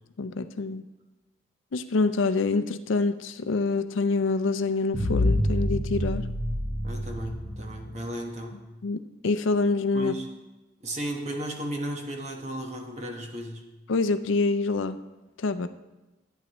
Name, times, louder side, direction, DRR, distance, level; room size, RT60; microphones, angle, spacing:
voice 1, 0.2-0.8 1.7-6.3 8.8-10.1 13.9-15.0 15.4-15.7, left 3 dB, 70° left, 11 dB, 0.5 m, -26 dB
sound 1, 4.9-8.0, left 1 dB, 5° left, 2.2 m, -27 dB
voice 2, 6.8-8.6 9.9-10.3 10.8-13.6, right 1 dB, 35° right, 2 dB, 1.3 m, -34 dB
13.5 x 9.0 x 3.1 m, 1.1 s
head